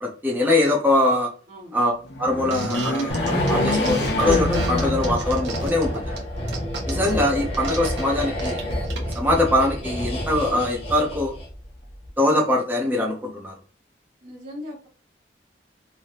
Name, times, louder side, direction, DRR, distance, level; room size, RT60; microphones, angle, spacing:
voice 1, 0.0-1.3 1.7-1.9 2.2-6.2 6.9-8.6 9.1-11.3 12.2-13.5, left 1 dB, 10° right, -1 dB, 0.6 m, -22 dB
sound 1, 2.0-5.6 6.1-6.2 7.3-8.1, left 2 dB, 70° left, 0.7 m, -27 dB
sound 2, 2.5-9.2, right 4 dB, 85° right, 0.9 m, -35 dB
sound 3, 3.1-11.6 11.9-12.1, equal, 35° left, 0.9 m, -28 dB
voice 2, 14.2-14.9, left 1 dB, 45° right, -8 dB, 1.2 m, -39 dB
3.1 x 2.7 x 2.8 m, 0.40 s
head